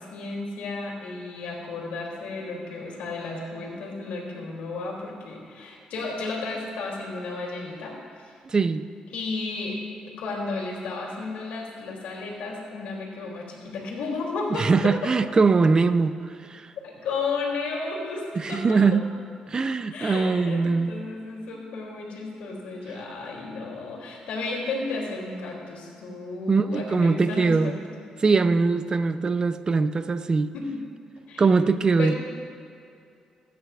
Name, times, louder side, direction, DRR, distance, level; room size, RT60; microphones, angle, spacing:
voice 1, 0.0-8.3 9.1-9.8 10.2-14.9 16.8-19.0 19.9-27.7 30.5-30.8 31.3-31.4 32.0-32.1, left 3 dB, 85° left, -2 dB, 2.9 m, -33 dB
voice 2, 8.5-8.8 14.5-16.1 16.4-16.7 18.4-19.1 19.5-20.9 26.5-27.7 28.2-30.5 31.4-32.1, right 4 dB, 35° right, 11 dB, 0.6 m, -22 dB
21.5 x 9.4 x 2.4 m, 2.4 s
cardioid pair, 80°, 2 cm